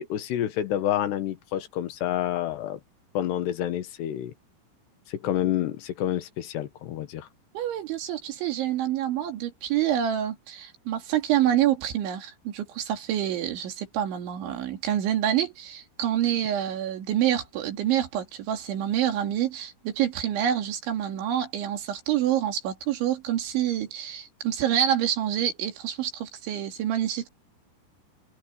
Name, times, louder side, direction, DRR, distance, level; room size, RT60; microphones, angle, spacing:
voice 1, 0.0-2.8 3.1-4.3 5.1-7.3, left 12 dB, 70° left, 3.2 m, -28 dB
voice 2, 7.5-27.3, right 11 dB, 85° right, 5.0 m, -27 dB
omnidirectional pair, 5.3 m